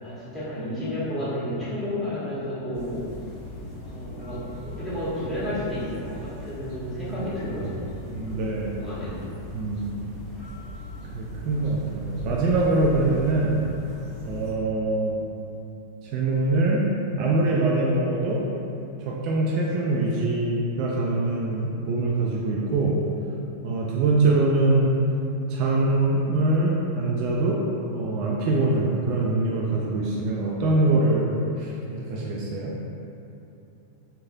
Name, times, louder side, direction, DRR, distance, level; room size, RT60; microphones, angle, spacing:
voice 1, 0.0-3.1 3.8-7.8 8.3-8.4 8.7-9.2, left 1 dB, 15° left, -13 dB, 1.4 m, -31 dB
sound 1, 2.7-14.5, left 1 dB, 40° left, 0.9 m, -39 dB
voice 2, 8.1-8.8 9.5-9.9 11.1-13.6 14.2-15.2 16.0-16.8 17.2-18.4 19.1-23.0 23.6-24.9 25.5-27.6 27.9-32.7, right 2 dB, 40° right, -3 dB, 0.3 m, -23 dB
3.1 x 2.6 x 2.4 m, 2.8 s
figure-of-eight pair, 90°, 0 cm